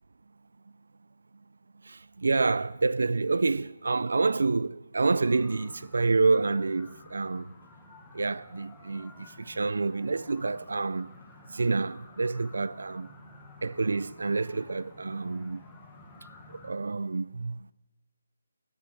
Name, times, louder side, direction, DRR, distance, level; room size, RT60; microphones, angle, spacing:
voice 1, 1.8-7.5 8.1-11.1 11.5-13.1 13.6-15.6 16.5-17.6, right 3 dB, 75° right, 0.4 m, -28 dB
sound 1, 5.0-16.7, left 4 dB, 15° left, 1.3 m, -53 dB
10.5 x 10.0 x 8.4 m
hypercardioid pair, 165°, 0 cm